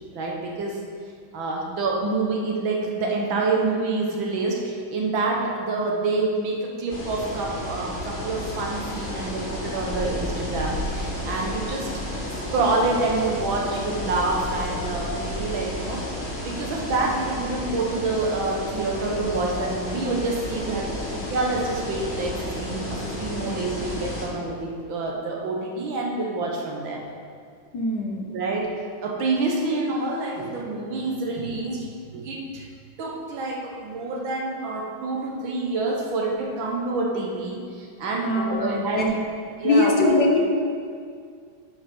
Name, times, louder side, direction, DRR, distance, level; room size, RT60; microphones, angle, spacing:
voice 1, 0.1-0.8 1.3-12.0 12.3-16.1 16.4-27.0 28.3-28.7 29.0-31.9 32.1-32.7 33.0-39.1 39.6-40.2, right 3 dB, 70° right, -1 dB, 1.9 m, -27 dB
sound 1, 6.9-24.3, left 1 dB, 30° left, 1.8 m, -32 dB
voice 2, 27.7-28.3 35.4-35.5 38.2-39.1 39.6-40.4, left 3 dB, 60° left, 0 dB, 1.4 m, -22 dB
9.3 x 5.5 x 5.4 m, 2.2 s
omnidirectional pair, 2.2 m